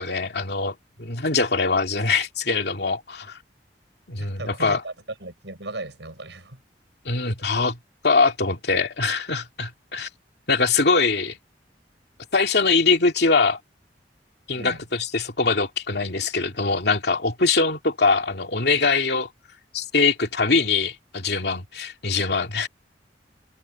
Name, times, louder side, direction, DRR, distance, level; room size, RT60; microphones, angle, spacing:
voice 1, 0.0-3.4 4.1-4.8 7.0-7.8 8.0-10.1 10.5-11.4 12.3-13.6 14.5-19.3 19.7-22.7, left 4 dB, 65° left, 2.7 m, -22 dB
voice 2, 4.2-4.9 5.2-6.6 14.5-14.8, right 2 dB, 85° right, 6.1 m, -37 dB
head